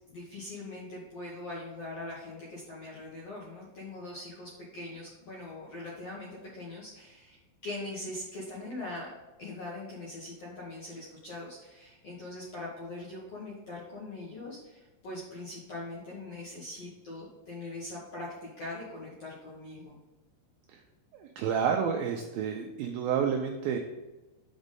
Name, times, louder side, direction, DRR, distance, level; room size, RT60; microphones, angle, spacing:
voice 1, 0.1-9.1 9.4-20.0, left 2 dB, 65° left, -5 dB, 1.6 m, -42 dB
voice 2, 21.1-23.8, right 7 dB, 85° right, 3 dB, 2.1 m, -30 dB
6.1 x 5.3 x 5.2 m, 1.1 s
omnidirectional pair, 4.8 m